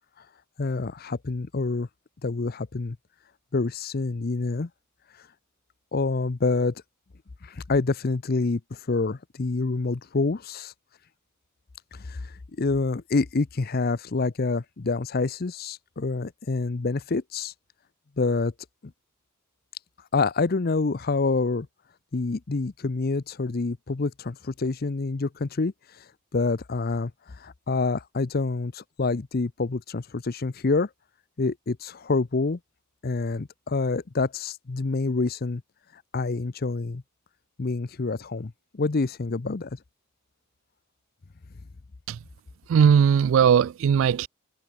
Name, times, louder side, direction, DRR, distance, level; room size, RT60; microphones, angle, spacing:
voice 1, 0.6-1.9 2.2-3.0 3.5-4.7 5.2-5.3 5.9-6.8 7.4-10.7 11.9-17.5 18.2-18.5 20.1-21.7 22.1-30.9 31.4-32.6 33.0-35.6 35.9-37.0 37.6-39.8, left 3 dB, 45° left, 0.6 m, -27 dB
voice 2, 42.7-44.3, right 7 dB, 65° right, 0.3 m, -19 dB
head